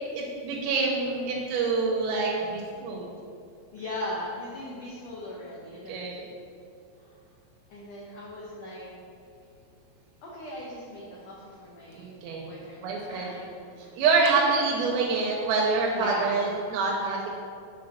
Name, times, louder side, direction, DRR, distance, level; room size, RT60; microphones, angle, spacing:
voice 1, 0.1-3.1 5.9-6.3 12.0-12.5 12.8-13.4 13.9-17.3, right 4 dB, 90° right, -2 dB, 2.6 m, -26 dB
voice 2, 3.7-6.0 7.0-7.1 7.7-9.0 10.2-12.1 12.5-14.0 15.9-16.5 17.0-17.2, left 1 dB, 75° left, -5 dB, 1.5 m, -39 dB
6.7 x 3.8 x 5.5 m, 2.4 s
omnidirectional pair, 4.2 m